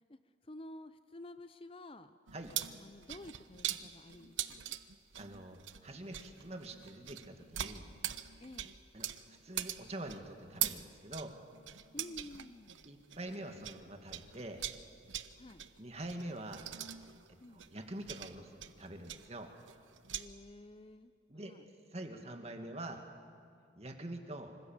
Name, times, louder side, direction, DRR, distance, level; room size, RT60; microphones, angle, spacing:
voice 1, 0.4-2.2 2.8-4.7 8.4-8.8 11.9-12.8 15.3-15.6 17.4-17.7 20.1-21.1 21.4-21.7, left 1 dB, 30° left, 11 dB, 0.6 m, -51 dB
sound 1, 2.3-13.8 14.1-20.2, right 11 dB, 90° right, 1.0 m, -42 dB
voice 2, 5.2-7.9 8.9-9.1 9.4-11.4 12.8-14.6 15.8-16.7 17.5-19.5 21.3-21.6 21.9-23.0 23.8-24.5, right 1 dB, 35° right, 4 dB, 2.2 m, -45 dB
26.0 x 25.5 x 7.4 m, 2.4 s
head